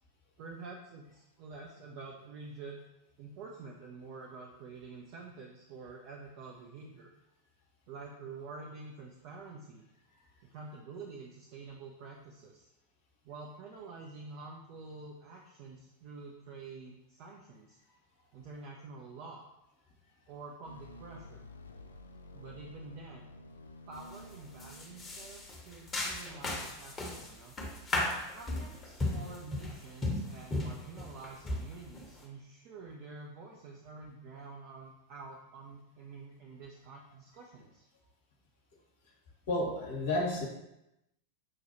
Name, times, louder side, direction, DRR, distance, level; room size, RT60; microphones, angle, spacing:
voice 1, 0.4-2.8 3.2-7.1 7.9-9.8 10.5-12.7 13.2-17.8 18.3-19.5 20.3-21.5 22.3-23.3 23.9-27.5 28.3-37.9, right 4 dB, 45° right, -1 dB, 0.5 m, -48 dB
sound 1, 20.6-25.9, left 1 dB, 75° left, 0.3 m, -52 dB
sound 2, 23.9-24.2 24.6-32.2, left 2 dB, 20° left, 0.9 m, -36 dB
voice 2, 39.5-40.4, left 1 dB, 55° left, -1 dB, 1.0 m, -31 dB
6.3 x 2.3 x 2.9 m, 0.90 s
figure-of-eight pair, 90°, 0 cm